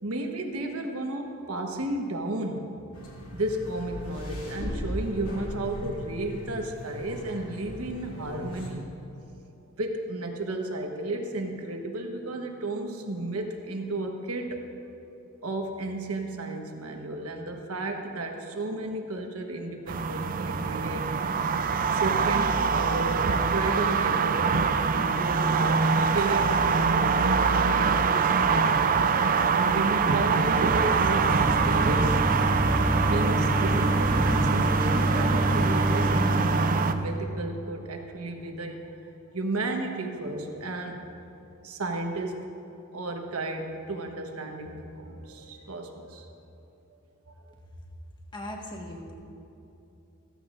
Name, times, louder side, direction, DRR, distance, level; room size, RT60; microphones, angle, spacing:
voice 1, 0.0-2.7 3.3-8.8 9.7-14.7 15.4-21.1 21.9-28.8 29.5-32.2 32.9-38.8 39.3-41.1 41.6-42.5 42.9-46.3 47.3-47.5, right 2 dB, 85° right, 3 dB, 1.2 m, -33 dB
sound 1, 2.9-8.7, left 1 dB, 80° left, 2.3 m, -38 dB
sound 2, 19.9-36.9, right 5 dB, 40° right, 0.4 m, -24 dB
sound 3, 30.5-37.1, right 1 dB, 20° right, 1.8 m, -26 dB
voice 2, 48.3-49.1, left 1 dB, 20° left, -1 dB, 1.5 m, -38 dB
15.0 x 14.0 x 2.5 m, 2.9 s
head